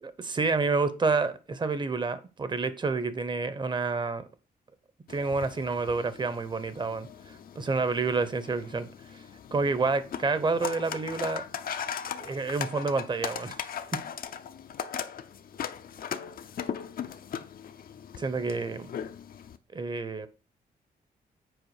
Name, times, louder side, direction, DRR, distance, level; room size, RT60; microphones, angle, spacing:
voice 1, 0.0-4.3 5.1-7.1 7.6-8.9 9.5-11.4 12.2-13.6 18.2-18.9 19.7-20.3, right 4 dB, 30° right, 0.8 m, -29 dB
sound 1, 5.1-19.6, left 8 dB, 65° left, 0.6 m, -39 dB
7.9 x 4.8 x 4.8 m
wide cardioid pair, 145°, 16 cm